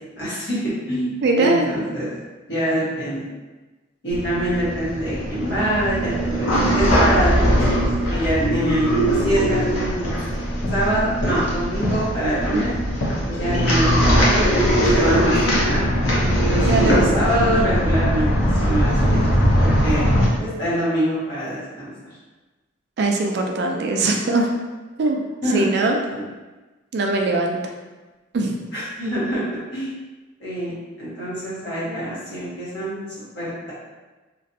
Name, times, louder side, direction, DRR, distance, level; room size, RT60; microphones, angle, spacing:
voice 1, 0.1-0.6 0.9-2.1 2.5-3.2 4.0-10.1 10.7-12.7 13.3-15.9 16.4-19.2 19.6-21.9 25.4-25.6 26.1-26.2 28.7-29.4 29.7-29.9 30.4-33.0 33.3-33.7, right 1 dB, 55° left, -10 dB, 1.4 m, -25 dB
voice 2, 1.2-1.7 16.7-17.0 23.0-24.5 25.0-25.2 25.5-26.0 26.9-27.6 28.3-28.6, right 2 dB, 55° right, 2 dB, 0.4 m, -21 dB
sound 1, 4.1-20.3, equal, 85° left, 0.7 m, -20 dB
3.0 x 2.5 x 2.6 m, 1.2 s
head